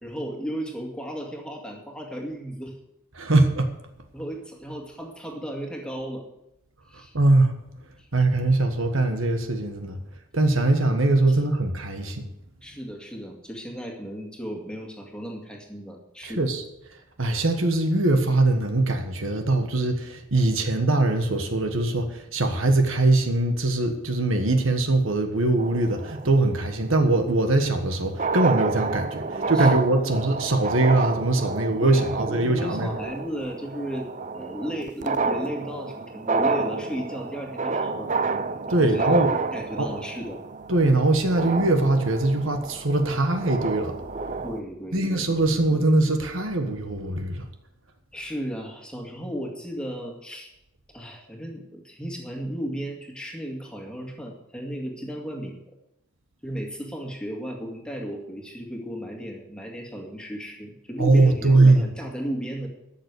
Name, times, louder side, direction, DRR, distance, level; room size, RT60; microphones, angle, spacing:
voice 1, 0.0-2.8 4.1-6.2 6.9-7.1 8.0-8.1 11.3-11.4 12.6-16.5 29.5-29.7 30.1-30.2 31.8-38.1 38.7-39.0 39.4-40.4 44.4-45.3 48.1-50.5 50.9-55.6 56.4-62.7, equal, 5° left, 1 dB, 2.1 m, -35 dB
voice 2, 3.1-3.7 7.1-7.5 8.1-10.0 10.3-12.3 16.2-16.6 17.2-32.9 38.7-39.3 39.8-39.9 40.7-43.9 44.9-47.5 61.0-61.8, right 2 dB, 65° right, 6 dB, 1.5 m, -22 dB
sound 1, 25.6-26.7 27.8-27.9 28.1-44.6, right 4 dB, 35° right, 0.6 m, -29 dB
13.0 x 7.0 x 8.3 m, 0.85 s
head